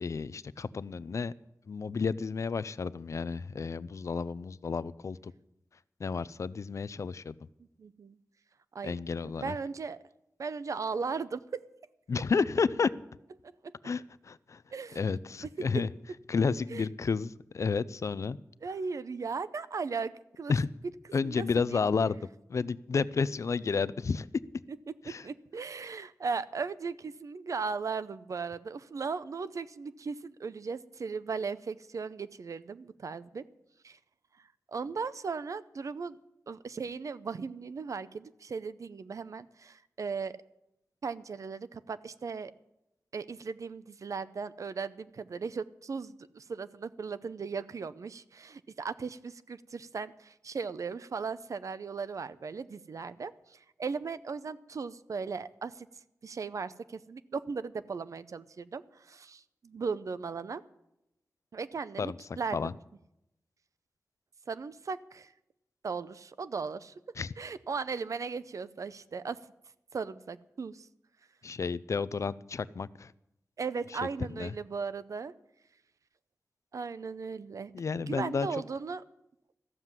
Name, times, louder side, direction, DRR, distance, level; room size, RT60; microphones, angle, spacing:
voice 1, 0.0-1.3 1.7-5.3 6.0-7.4 8.8-9.6 12.1-12.9 13.8-14.6 14.9-15.9 16.3-18.4 20.5-20.7 21.1-22.2 22.5-24.3 25.0-25.3 62.0-62.2 62.5-62.7 67.2-67.3 71.4-73.1 73.9-74.0 74.3-74.5 77.7-78.5, left 5 dB, 60° left, 18 dB, 0.5 m, -31 dB
voice 2, 7.8-8.2 8.7-9.0 9.3-10.0 10.4-11.6 13.6-13.7 14.7-15.0 15.6-15.7 16.7-16.8 18.6-20.5 21.2-21.8 25.1-33.4 33.8-34.0 34.7-36.2 36.5-40.4 41.0-42.5 43.1-55.9 56.2-60.6 61.5-62.6 64.5-65.3 65.8-66.9 67.4-69.4 69.9-70.9 73.6-75.3 76.7-77.7 78.1-79.0, right 5 dB, 70° right, 15 dB, 0.6 m, -37 dB
14.0 x 7.4 x 9.5 m, 0.85 s
wide cardioid pair, 120°, 6 cm